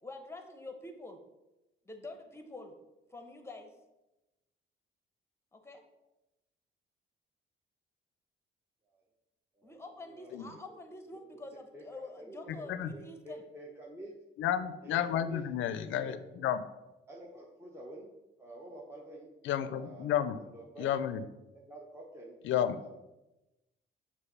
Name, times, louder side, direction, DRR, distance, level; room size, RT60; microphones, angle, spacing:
voice 1, 0.0-1.2 1.9-2.7 3.1-3.7 5.5-5.8 9.6-13.4, left 2 dB, 15° left, 5 dB, 0.9 m, -47 dB
voice 2, 10.1-10.8 11.1-11.4 11.7-14.1 14.8-16.2 17.1-18.1 18.4-19.3 19.7-21.0 21.5-22.4 22.8-22.9, right 1 dB, 15° right, -4 dB, 0.9 m, -49 dB
voice 3, 14.4-16.6 19.4-20.4 20.8-21.2 22.4-22.8, left 10 dB, 75° left, 12 dB, 0.5 m, -31 dB
6.5 x 2.6 x 5.5 m, 1.0 s
cardioid pair, 90°, 20 cm